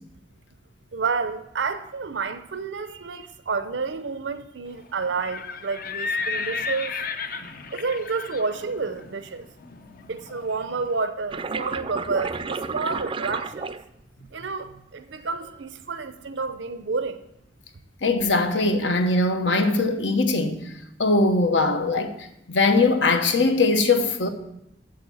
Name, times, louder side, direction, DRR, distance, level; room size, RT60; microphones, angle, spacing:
voice 1, 0.9-6.9 7.7-9.4 10.1-13.8 14.3-17.2, right 4 dB, 85° right, 0.7 m, -30 dB
Livestock farm animals working animals, 5.0-10.9, left 4 dB, 55° left, 0.7 m, -33 dB
sound 1, 11.3-14.3 15.1-15.6, right 4 dB, 30° right, 0.4 m, -31 dB
voice 2, 18.0-20.7 21.0-24.3, left 3 dB, 80° left, 1.1 m, -21 dB
8.7 x 7.3 x 7.1 m
head